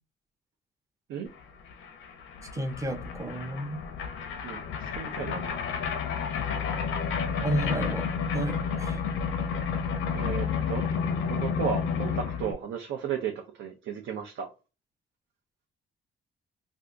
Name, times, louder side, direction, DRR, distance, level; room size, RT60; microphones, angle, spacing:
sound 1, 1.4-1.5 1.6-12.5, left 6 dB, 85° left, 0.6 m, -31 dB
voice 1, 2.5-3.8 7.4-9.0, right 1 dB, 15° right, 0.6 m, -32 dB
voice 2, 4.4-5.6 10.1-10.8 11.3-14.5, right 7 dB, 70° right, 0.6 m, -34 dB
2.6 x 2.4 x 3.4 m
cardioid pair, 90°, 20 cm